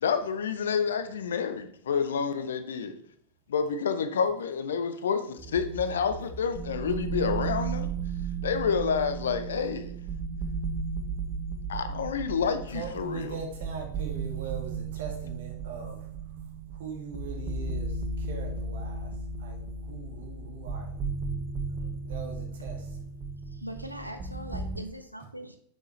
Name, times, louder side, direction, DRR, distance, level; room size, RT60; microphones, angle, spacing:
voice 1, 0.0-3.0 3.5-7.9 8.4-9.9 11.7-13.4, left 6 dB, 65° left, 0.7 m, -29 dB
sound 1, 5.4-24.8, right 4 dB, 25° right, 1.0 m, -35 dB
voice 2, 12.7-16.0 16.7-19.1 19.4-21.0 22.0-22.9, right 5 dB, 60° right, 1.8 m, -41 dB
voice 3, 21.7-22.3 23.4-25.6, equal, 90° right, 0.5 m, -42 dB
6.5 x 6.3 x 3.2 m
figure-of-eight pair, 90°, 0 cm